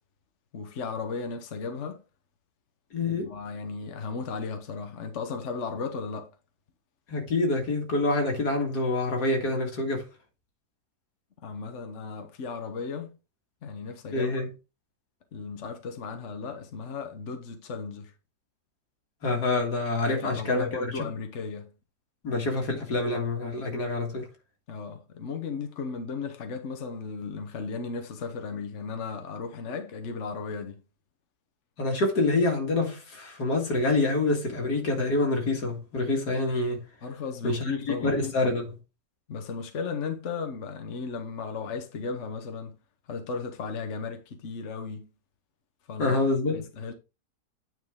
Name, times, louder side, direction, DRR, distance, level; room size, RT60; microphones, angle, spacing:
voice 1, 0.5-2.0 3.0-6.3 11.4-13.2 13.6-14.3 15.3-18.1 20.1-21.7 24.7-30.8 37.0-38.2 39.3-42.8 43.1-45.1 45.9-46.2 46.5-46.9, left 4 dB, 50° left, 1.2 m, -35 dB
voice 2, 2.9-3.3 7.1-10.1 14.1-14.5 19.2-20.9 22.2-24.3 31.8-36.8 37.4-37.7 38.0-38.8 46.0-46.6, left 2 dB, 75° left, 2.4 m, -26 dB
9.3 x 4.4 x 3.6 m
omnidirectional pair, 1.8 m